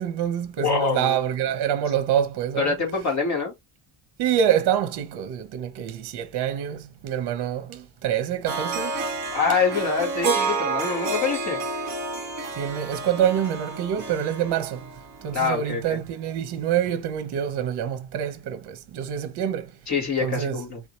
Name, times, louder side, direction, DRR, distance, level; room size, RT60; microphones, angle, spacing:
voice 1, 0.0-2.7 4.2-8.9 12.6-14.8 15.2-19.7 20.2-20.6, right 9 dB, 55° right, 0.8 m, -26 dB
voice 2, 0.6-1.2 2.6-3.5 9.3-11.6 15.3-16.0 19.9-20.8, left 5 dB, 35° left, 1.8 m, -25 dB
Harp, 8.5-15.6, right 4 dB, 35° right, 1.3 m, -29 dB
3.6 x 2.7 x 3.1 m
cardioid pair, 170°, 48 cm